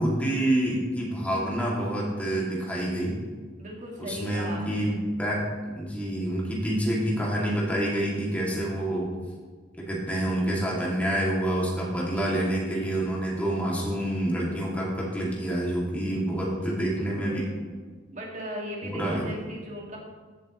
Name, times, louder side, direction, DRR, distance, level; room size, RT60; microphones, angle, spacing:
voice 1, 0.0-3.2 4.0-5.5 5.7-9.1 9.8-17.5 18.8-19.3, right 1 dB, 10° left, -5 dB, 2.7 m, -27 dB
voice 2, 3.6-5.0 12.2-12.4 16.5-16.9 17.2-17.6 18.1-20.0, equal, 45° right, -1 dB, 2.5 m, -38 dB
16.0 x 7.5 x 3.3 m, 1.5 s
head